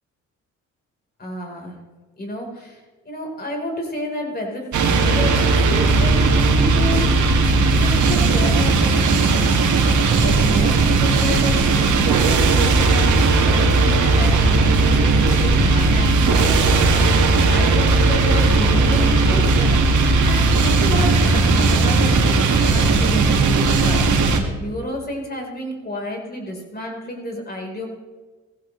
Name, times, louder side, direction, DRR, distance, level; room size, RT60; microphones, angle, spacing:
voice 1, 1.2-1.7 2.2-7.1 7.8-19.8 20.2-24.0 24.6-27.9, equal, 30° left, 0 dB, 4.6 m, -30 dB
sound 1, 4.7-24.4, right 3 dB, 70° right, 2.2 m, -17 dB
sound 2, 10.3-23.3, right 1 dB, 15° right, 3.0 m, -33 dB
17.5 x 15.0 x 3.4 m, 1.4 s
cardioid pair, 90°, 30 cm